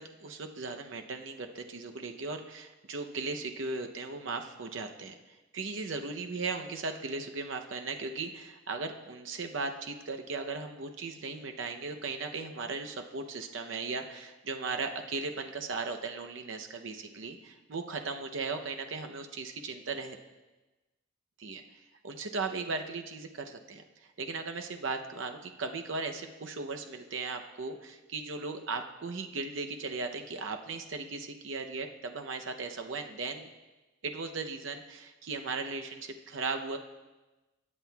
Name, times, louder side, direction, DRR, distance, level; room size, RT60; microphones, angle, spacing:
voice 1, 0.0-5.1 5.5-20.2 21.4-21.6 22.0-23.8 24.2-33.5 34.0-36.8, right 4 dB, 70° right, 5 dB, 0.7 m, -37 dB
17.5 x 7.6 x 2.3 m, 1.1 s
head